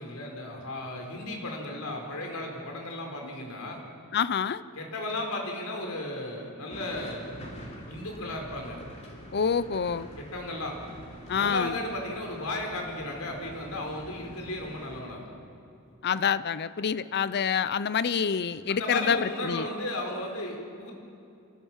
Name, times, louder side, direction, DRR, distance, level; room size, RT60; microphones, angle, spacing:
voice 1, 0.0-3.8 4.7-7.4 7.9-8.8 10.2-10.8 11.3-15.3 18.7-20.9, left 1 dB, 75° left, 1 dB, 4.4 m, -35 dB
voice 2, 4.1-4.6 9.3-10.1 11.3-11.8 16.0-19.7, left 7 dB, 50° left, 16 dB, 0.5 m, -27 dB
sound 1, 6.7-15.0, equal, 30° left, 3.0 m, -45 dB
27.0 x 16.5 x 7.3 m, 2.7 s
head